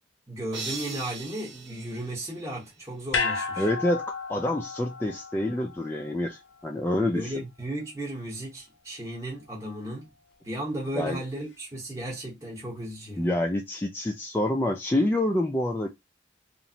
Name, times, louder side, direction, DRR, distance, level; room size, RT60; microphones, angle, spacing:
voice 1, 0.3-3.7 7.0-10.1 10.4-13.3, right 1 dB, 15° right, 0.9 m, -35 dB
sound 1, 0.5-2.9, right 4 dB, 70° right, 0.9 m, -40 dB
sound 2, 3.1-7.5 7.8-7.9, left 5 dB, 65° left, 0.5 m, -33 dB
voice 2, 3.6-7.3 10.9-11.2 13.2-15.9, left 1 dB, 10° left, 0.3 m, -27 dB
3.0 x 2.5 x 2.8 m
head